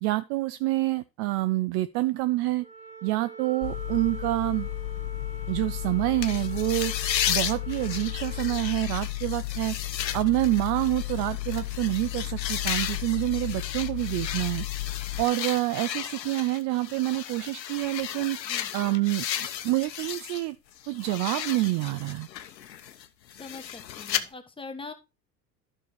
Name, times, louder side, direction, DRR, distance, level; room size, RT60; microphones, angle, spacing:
voice 1, 0.0-2.6 3.0-4.7 5.5-6.9 7.3-9.7 10.1-14.7 15.2-18.4 18.7-19.2 19.6-20.6 20.9-22.3, right 19 dB, 40° right, 0.4 m, -27 dB
Wind instrument woodwind instrument, 2.6-8.9, right 4 dB, 15° right, 2.5 m, -44 dB
sound 1, 3.6-15.3, left 17 dB, 50° left, 0.7 m, -34 dB
sound 2, 6.2-20.4 20.8-24.2, left 10 dB, 85° left, 0.9 m, -34 dB
voice 2, 23.4-24.9, left 3 dB, 10° left, 1.3 m, -42 dB
11.5 x 6.3 x 3.2 m
hypercardioid pair, 85°, 49 cm